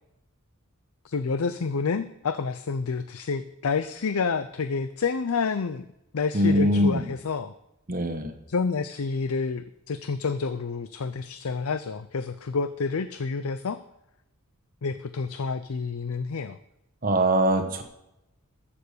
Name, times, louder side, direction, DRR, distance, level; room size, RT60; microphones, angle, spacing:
voice 1, 1.0-5.9 6.1-7.5 8.5-13.8 14.8-16.6, left 4 dB, 75° left, 11 dB, 0.6 m, -29 dB
voice 2, 6.3-7.0 7.9-8.3 17.0-17.8, equal, 40° right, 5 dB, 1.3 m, -22 dB
14.5 x 6.9 x 6.8 m, 0.84 s
head